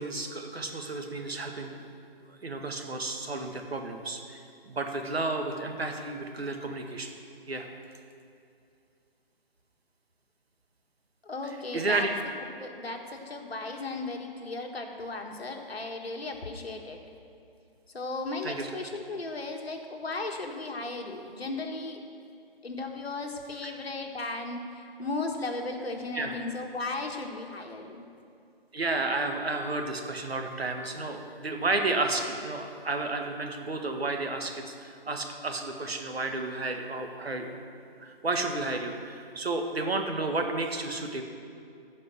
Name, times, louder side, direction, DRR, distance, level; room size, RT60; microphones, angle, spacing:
voice 1, 0.0-1.8 2.4-4.4 4.7-7.1 7.5-7.7 11.7-12.1 18.4-18.7 23.6-23.7 26.1-26.3 28.7-37.6 38.0-41.2, right 2 dB, 90° right, 4 dB, 1.7 m, -32 dB
voice 2, 11.2-12.1 12.6-17.0 17.9-22.0 22.6-28.0, left 2 dB, 80° left, 3 dB, 1.7 m, -36 dB
15.5 x 5.3 x 6.3 m, 2.5 s
figure-of-eight pair, 160°, 30 cm